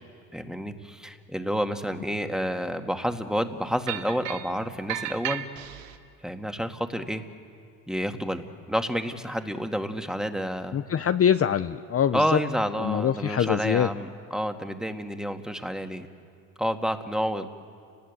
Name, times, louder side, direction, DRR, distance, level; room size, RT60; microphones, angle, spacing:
voice 1, 0.3-5.4 6.2-7.2 7.9-10.8 12.1-16.1 16.6-17.5, equal, ahead, 6 dB, 2.1 m, -29 dB
sound 1, 3.9-4.5 4.9-6.0, right 12 dB, 90° right, 1.5 m, -33 dB
voice 2, 10.7-12.4 12.8-13.9, left 9 dB, 35° left, 10 dB, 0.8 m, -24 dB
30.0 x 19.5 x 8.2 m, 2.4 s
supercardioid pair, 75°, 38 cm